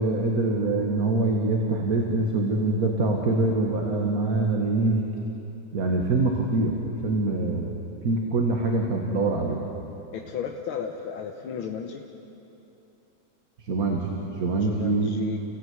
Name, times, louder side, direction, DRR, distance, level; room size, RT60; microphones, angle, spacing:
voice 1, 0.0-5.0 5.7-9.6 13.6-15.1, right 2 dB, 45° right, 1 dB, 2.2 m, -24 dB
voice 2, 10.1-12.0 14.6-15.4, left 8 dB, 85° left, 2 dB, 2.0 m, -33 dB
30.0 x 16.5 x 9.6 m, 3.0 s
omnidirectional pair, 2.2 m